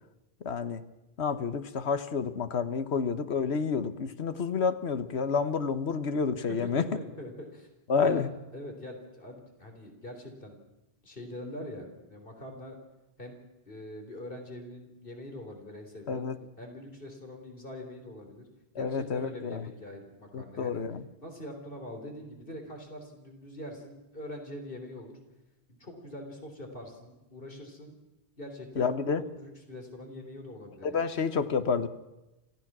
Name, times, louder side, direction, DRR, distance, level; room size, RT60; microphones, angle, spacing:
voice 1, 0.4-0.8 1.2-6.9 7.9-8.3 16.1-16.4 18.7-19.7 20.3-21.1 28.8-29.2 30.8-31.9, left 5 dB, 85° left, 11 dB, 1.4 m, -29 dB
voice 2, 6.5-7.7 8.0-10.6 11.0-12.8 13.2-16.3 16.6-18.4 18.8-20.8 21.2-25.2 25.7-28.0 28.4-28.9 29.4-31.1, left 1 dB, 55° left, 3 dB, 4.0 m, -43 dB
26.5 x 16.0 x 6.2 m, 0.99 s
omnidirectional pair, 1.1 m